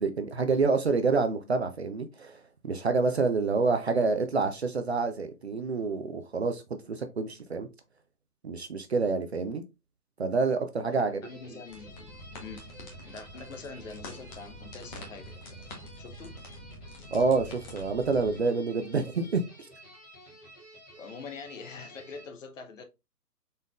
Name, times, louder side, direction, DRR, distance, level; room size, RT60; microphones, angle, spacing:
voice 1, 0.0-7.7 8.4-9.6 10.2-11.2 17.1-19.4, right 4 dB, 45° right, 0.4 m, -27 dB
voice 2, 10.8-12.6 13.1-15.4 16.0-16.4 21.0-22.8, left 4 dB, 55° left, 0.8 m, -44 dB
sound 1, 11.2-22.2, equal, 10° left, 0.7 m, -52 dB
sound 2, 11.7-18.4, equal, 30° left, 1.0 m, -46 dB
4.0 x 3.6 x 2.3 m
figure-of-eight pair, 145°, 47 cm